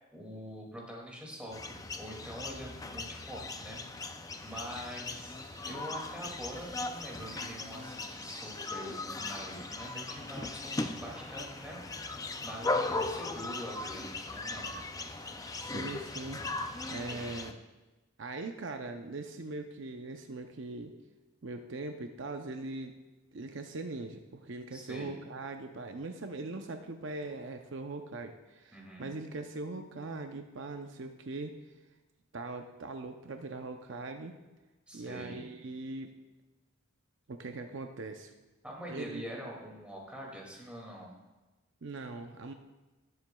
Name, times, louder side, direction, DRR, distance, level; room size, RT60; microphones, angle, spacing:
voice 1, 0.1-12.1 12.4-14.7 24.7-25.1 28.7-29.1 34.9-35.4 38.6-41.1, equal, 5° right, -2 dB, 2.3 m, -45 dB
sound 1, 1.5-17.5, left 3 dB, 15° left, 0.5 m, -38 dB
sound 2, 4.3-17.5, right 4 dB, 90° right, 1.7 m, -57 dB
voice 2, 15.5-16.5 16.9-17.6 18.2-20.9 21.4-22.9 23.3-31.6 32.3-34.4 34.9-36.1 37.3-38.3 38.9-39.3 41.8-42.5, right 3 dB, 65° right, 5 dB, 0.6 m, -41 dB
19.0 x 7.7 x 2.3 m, 1.1 s
head